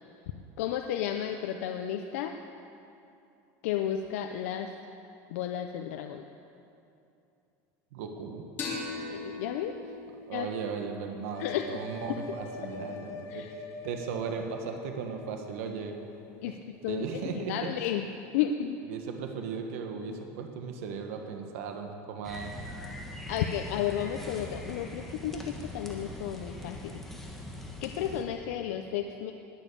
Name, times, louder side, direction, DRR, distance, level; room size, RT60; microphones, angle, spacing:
voice 1, 0.6-2.4 3.6-4.7 5.3-6.2 9.1-9.7 10.3-10.5 11.4-11.6 13.3-13.5 16.4-16.5 16.8-17.0 17.3-18.0 18.3-18.8 23.3-25.4 25.7-27.0 27.8-29.3, left 10 dB, 80° left, 5 dB, 0.7 m, -32 dB
voice 2, 7.9-8.4 10.3-16.0 16.5-16.6 16.9-17.7 18.9-22.5, right 5 dB, 80° right, 4 dB, 1.6 m, -37 dB
sound 1, 8.6-11.9, left 3 dB, 25° left, 3.3 m, -40 dB
sound 2, 11.3-15.7, left 3 dB, 40° left, 1.2 m, -43 dB
sound 3, 22.2-28.2, left 1 dB, 5° left, 1.5 m, -42 dB
20.5 x 7.3 x 7.0 m, 2.7 s
supercardioid pair, 155°, 8 cm